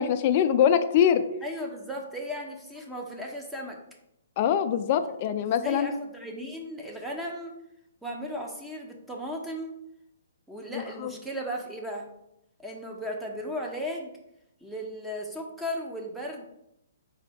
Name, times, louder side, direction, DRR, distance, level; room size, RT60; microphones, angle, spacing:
voice 1, 0.0-1.2 4.4-6.0 10.7-11.1, left 9 dB, 40° left, 10 dB, 0.4 m, -23 dB
voice 2, 1.4-3.8 5.6-7.5 8.0-9.8 10.5-12.1 12.6-14.1 14.6-16.5, equal, 5° right, 0 dB, 0.7 m, -36 dB
4.2 x 2.7 x 4.2 m, 0.82 s
hypercardioid pair, 145°, 0 cm